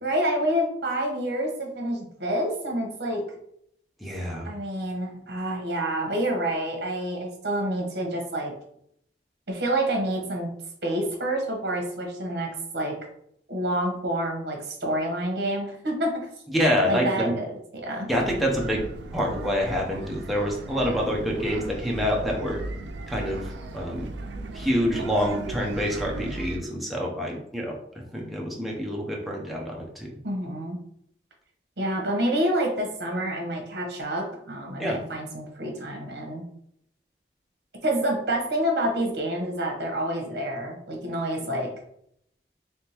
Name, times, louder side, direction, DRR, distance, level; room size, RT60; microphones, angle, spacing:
voice 1, 0.0-3.2 4.4-8.5 9.5-10.5 10.8-12.9 13.5-16.3 16.8-17.5 17.7-18.1 30.2-30.8 31.8-36.4 37.8-41.7, right 1 dB, 65° right, 1 dB, 1.1 m, -28 dB
voice 2, 4.0-4.5 16.5-17.3 18.1-18.8 19.1-22.6 23.1-24.1 24.5-27.8 28.1-30.1 34.8-35.0, equal, ahead, -3 dB, 0.6 m, -26 dB
sound 1, 18.1-26.6, right 2 dB, 80° right, 0.4 m, -37 dB
3.5 x 3.4 x 2.9 m, 0.72 s
head